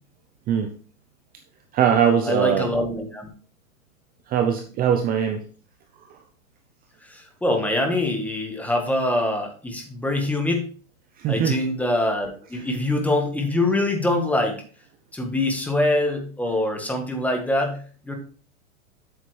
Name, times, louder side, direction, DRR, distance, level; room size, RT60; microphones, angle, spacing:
voice 1, 1.7-2.7 4.3-5.4 6.1-6.2 11.2-11.6, right 8 dB, 20° right, 6 dB, 0.7 m, -21 dB
voice 2, 2.2-3.3 7.0-10.7 11.3-14.6 15.1-18.1, left 1 dB, 5° left, 3 dB, 1.6 m, -24 dB
8.0 x 7.3 x 3.3 m, 0.40 s
hypercardioid pair, 125°, 41 cm